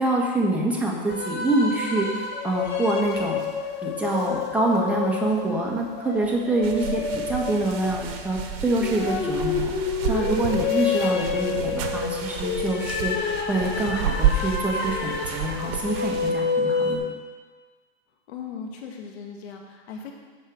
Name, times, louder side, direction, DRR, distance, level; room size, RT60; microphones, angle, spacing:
voice 1, 0.0-3.4 3.8-9.7 10.1-17.0, right 2 dB, 5° right, -3 dB, 1.4 m, -26 dB
sound 1, 1.1-17.0, left 5 dB, 35° left, 1.2 m, -29 dB
voice 2, 6.6-7.1 11.1-11.7 18.3-20.1, left 6 dB, 80° left, 1 dB, 1.8 m, -39 dB
sound 2, 6.6-16.3, right 7 dB, 65° right, 1.1 m, -31 dB
9.8 x 4.7 x 6.3 m, 1.4 s
supercardioid pair, 135°, 32 cm